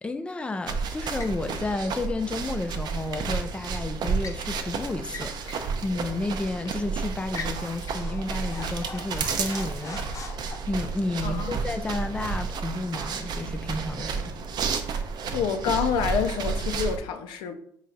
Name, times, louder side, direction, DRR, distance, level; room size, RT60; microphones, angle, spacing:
voice 1, 0.0-10.0 10.7-14.3, left 2 dB, 15° left, 0.3 m, -31 dB
sound 1, 0.7-17.0, right 5 dB, 60° right, 0.5 m, -31 dB
sound 2, 1.2-1.4 3.6-4.4 5.0-5.7 6.0-6.2 6.6-6.9 7.3-10.6, left 4 dB, 40° left, 0.7 m, -41 dB
voice 2, 11.2-11.5 15.3-17.5, left 7 dB, 80° left, 0.4 m, -27 dB
4.2 x 2.3 x 3.9 m
supercardioid pair, 70°, 8 cm